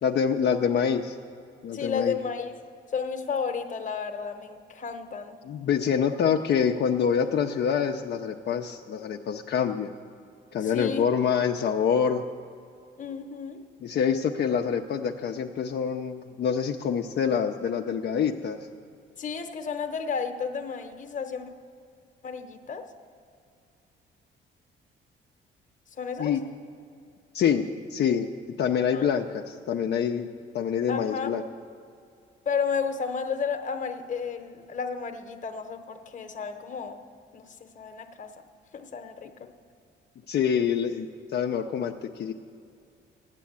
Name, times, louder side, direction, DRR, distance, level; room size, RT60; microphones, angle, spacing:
voice 1, 0.0-1.2 1.6-2.2 5.5-9.9 10.5-12.2 13.8-18.6 26.2-26.4 27.3-28.3 28.6-30.3 30.5-31.4 40.3-42.3, left 7 dB, 60° left, 3 dB, 0.6 m, -26 dB
voice 2, 1.7-2.5 2.9-5.4 10.6-11.1 13.0-13.6 19.2-21.4 22.2-22.9 26.0-26.3 28.9-29.1 30.9-31.3 32.5-37.0 37.3-38.3 38.7-39.5, left 6 dB, 40° left, 6 dB, 1.0 m, -32 dB
9.2 x 8.3 x 8.5 m, 2.5 s
cardioid pair, 90°, 20 cm